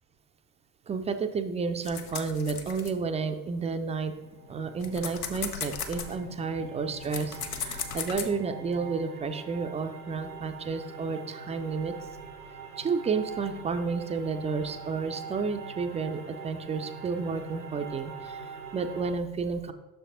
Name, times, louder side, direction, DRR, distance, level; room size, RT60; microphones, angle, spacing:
voice 1, 0.9-4.1 4.5-11.9 12.8-19.7, right 4 dB, 15° right, 8 dB, 0.3 m, -31 dB
sound 1, 1.8-3.6 4.2-8.3, left 6 dB, 85° left, 0.6 m, -37 dB
sound 2, 3.8-19.1, right 5 dB, 85° right, 0.7 m, -44 dB
6.4 x 4.7 x 3.7 m, 1.1 s
figure-of-eight pair, 55°, 44 cm